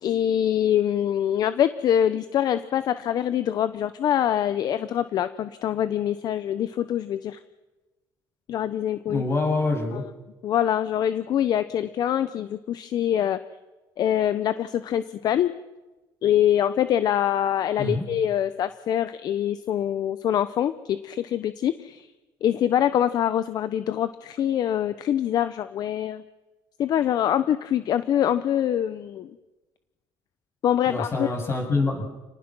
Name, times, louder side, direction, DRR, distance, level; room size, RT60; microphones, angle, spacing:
voice 1, 0.0-7.4 8.5-9.2 9.9-10.0 10.4-13.4 14.0-15.5 16.2-22.1 22.4-26.2 26.8-29.3 30.6-31.3, left 10 dB, 55° left, 13 dB, 0.9 m, -24 dB
voice 2, 9.1-10.0 17.8-18.1 30.9-32.2, left 3 dB, 30° left, 2 dB, 7.3 m, -26 dB
29.5 x 19.5 x 6.3 m, 1.1 s
cardioid pair, 130°, 8 cm